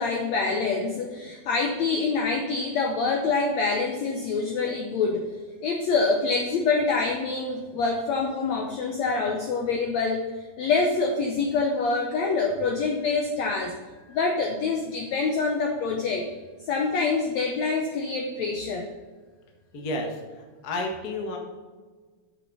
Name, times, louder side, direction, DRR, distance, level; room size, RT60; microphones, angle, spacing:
voice 1, 0.0-5.3 5.6-13.7 14.1-16.3 16.6-18.9, left 4 dB, 85° left, 2 dB, 1.5 m, -26 dB
voice 2, 19.7-21.4, left 1 dB, 65° left, 1 dB, 0.9 m, -31 dB
8.3 x 6.7 x 5.4 m, 1.4 s
omnidirectional pair, 4.3 m